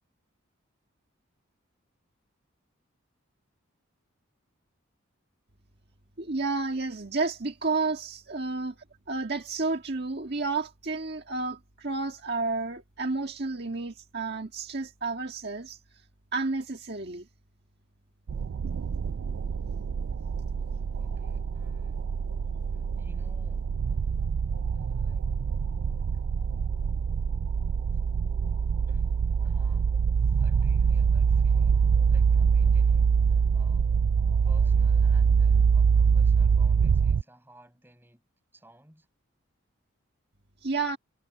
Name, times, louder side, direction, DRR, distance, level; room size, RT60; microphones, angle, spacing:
voice 1, 6.2-8.7 9.1-15.8 16.3-17.3 40.6-41.0, right 3 dB, 50° right, 1.7 m, -31 dB
sound 1, 18.3-37.2, right 6 dB, 90° right, 0.4 m, -24 dB
voice 2, 21.0-22.1 22.7-23.7 24.7-25.3 26.1-26.2 28.9-33.9 34.4-38.2 38.5-39.1, right 1 dB, 10° right, 5.9 m, -56 dB
head